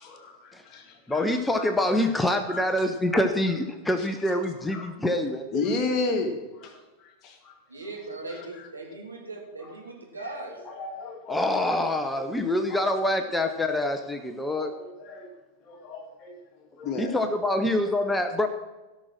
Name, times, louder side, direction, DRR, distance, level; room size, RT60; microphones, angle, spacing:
voice 1, 0.0-1.3 1.6-1.7 2.5-2.7 4.3-4.4 4.7-4.9 5.5-6.8 7.0-7.5 8.6-8.7 10.7-11.4 12.7-13.0 13.4-13.9 14.6-15.3 15.7-16.4 16.8-17.2 17.5-17.9, left 3 dB, 30° left, 3 dB, 2.1 m, -33 dB
voice 2, 1.1-5.6 11.3-14.7 17.0-18.5, left 1 dB, 5° left, 7 dB, 0.8 m, -26 dB
voice 3, 7.7-10.6, right 2 dB, 80° right, -1 dB, 3.1 m, -39 dB
16.0 x 6.3 x 6.2 m, 1.1 s
figure-of-eight pair, 90°, 0 cm